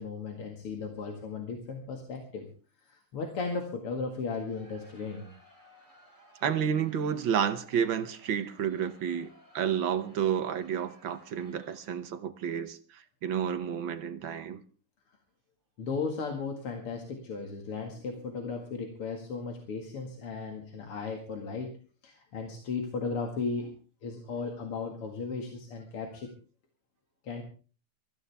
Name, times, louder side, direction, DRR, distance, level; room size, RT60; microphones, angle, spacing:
voice 1, 0.0-2.5 2.8-5.3 15.8-21.8 22.0-23.7 24.0-26.3 27.2-27.4, left 4 dB, 80° left, 2.9 m, -36 dB
Crowd, 4.4-12.2, left 1 dB, 30° left, 8.2 m, -60 dB
voice 2, 6.4-14.6, right 8 dB, 65° right, 1.7 m, -31 dB
23.5 x 14.5 x 3.5 m
omnidirectional pair, 2.4 m